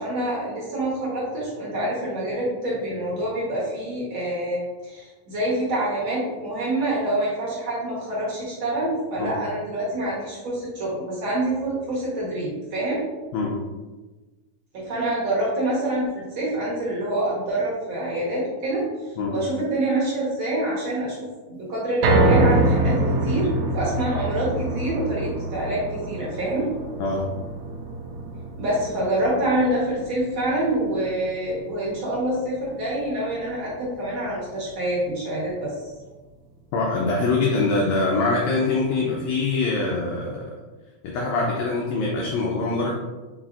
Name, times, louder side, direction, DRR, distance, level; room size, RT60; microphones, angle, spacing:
voice 1, 0.0-13.0 14.7-18.8 19.3-21.2 21.5-26.7 28.6-35.9, right 1 dB, 60° right, -6 dB, 1.4 m, -26 dB
sound 1, 22.0-34.3 34.7-34.8 35.2-35.3, right 2 dB, 80° right, 1.6 m, -26 dB
voice 2, 36.7-40.6 41.0-42.9, left 3 dB, 85° left, -2 dB, 1.6 m, -23 dB
5.0 x 4.0 x 2.4 m, 1.2 s
omnidirectional pair, 3.8 m